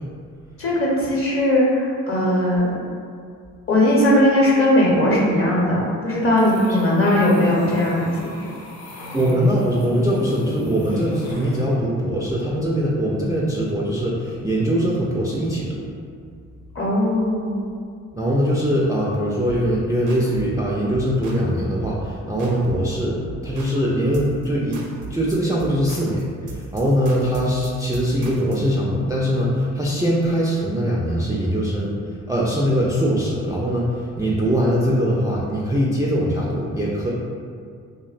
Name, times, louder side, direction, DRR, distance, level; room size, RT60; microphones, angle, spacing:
voice 1, 0.6-2.7 3.7-8.5 16.7-17.6, left 1 dB, 40° left, -4 dB, 0.8 m, -19 dB
sound 1, 6.4-11.7, left 1 dB, 85° left, 0.5 m, -36 dB
voice 2, 9.1-15.9 18.1-23.2 23.4-31.9 32.3-37.1, equal, 10° right, -6 dB, 0.3 m, -22 dB
sound 2, 19.5-19.7 20.1-20.6 20.9-21.5 21.8-22.1 22.4-22.9 23.3-23.8 24.1-24.5 24.7-28.7, right 4 dB, 60° right, 0.5 m, -37 dB
2.6 x 2.0 x 2.4 m, 2.2 s
supercardioid pair, 45°, 35 cm